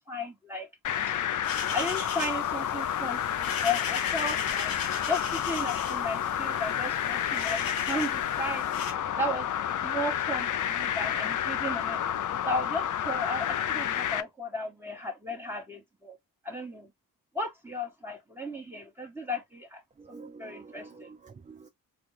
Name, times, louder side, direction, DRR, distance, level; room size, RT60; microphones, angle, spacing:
voice 1, 0.1-0.7 1.7-4.7 5.1-8.7 9.2-9.5 9.8-12.0 12.4-16.2 16.4-16.9 17.3-19.8 20.1-21.1, left 1 dB, 5° right, 1.2 m, -34 dB
sound 1, 0.8-14.2, left 10 dB, 60° left, 0.5 m, -30 dB
sound 2, 1.4-8.9, left 5 dB, 80° left, 1.0 m, -39 dB
voice 2, 20.0-21.7, right 4 dB, 20° right, 0.4 m, -48 dB
4.1 x 2.3 x 3.2 m
cardioid pair, 55°, 35 cm